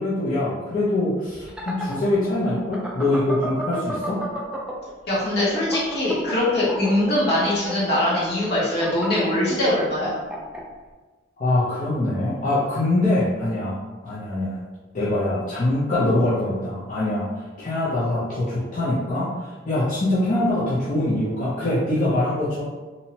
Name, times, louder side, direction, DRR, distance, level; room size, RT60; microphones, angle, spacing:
voice 1, 0.0-4.2 11.4-13.8 14.0-14.6 14.9-17.3 17.6-22.6, left 1 dB, 45° left, -10 dB, 0.5 m, -23 dB
sound 1, 1.3-4.9 5.2-10.6, equal, 5° right, 0.3 m, -32 dB
voice 2, 5.1-10.1, left 1 dB, 60° left, -8 dB, 1.0 m, -22 dB
2.7 x 2.0 x 2.8 m, 1.3 s
head